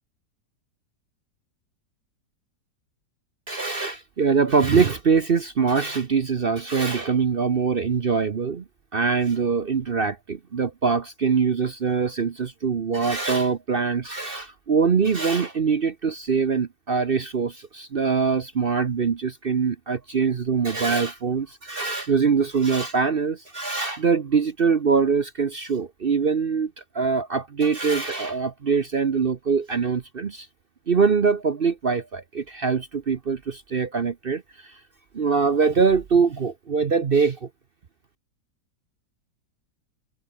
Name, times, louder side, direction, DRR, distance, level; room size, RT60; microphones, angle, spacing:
voice 1, 3.5-8.6 8.9-30.5 30.9-34.7 35.1-37.5, right 5 dB, 45° right, 0.8 m, -23 dB
omnidirectional pair, 1.9 m